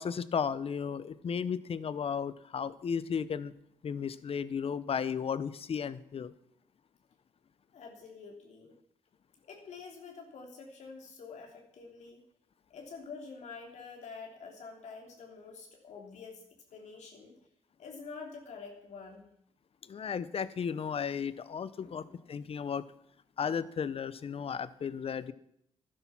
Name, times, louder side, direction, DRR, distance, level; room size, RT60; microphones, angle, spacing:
voice 1, 0.0-3.5 3.8-6.3 19.9-22.8 23.4-25.3, left 7 dB, 55° left, 16 dB, 0.8 m, -34 dB
voice 2, 7.7-8.8 9.5-12.2 12.7-16.4 16.7-17.3 17.8-19.3 21.8-22.5, left 4 dB, 75° left, 2 dB, 3.2 m, -47 dB
12.5 x 10.5 x 6.0 m, 0.73 s
cardioid pair, 70°, 12 cm